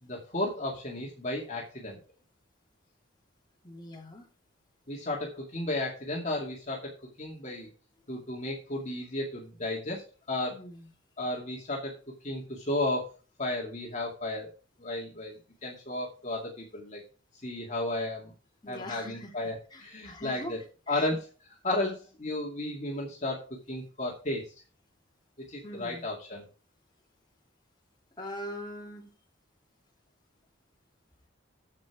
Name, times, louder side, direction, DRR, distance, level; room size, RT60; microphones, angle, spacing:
voice 1, 0.0-2.0 4.9-7.7 8.1-10.6 11.2-11.9 12.2-13.1 13.4-14.5 14.8-17.0 17.4-18.3 18.7-20.6 20.9-24.5 25.4-26.4, left 1 dB, 40° left, 2.4 m, -34 dB
voice 2, 3.6-4.3 10.5-10.9 18.6-20.6 20.9-21.1 25.6-26.1 28.2-29.1, left 1 dB, 25° left, 2.9 m, -42 dB
14.5 x 5.4 x 4.9 m
head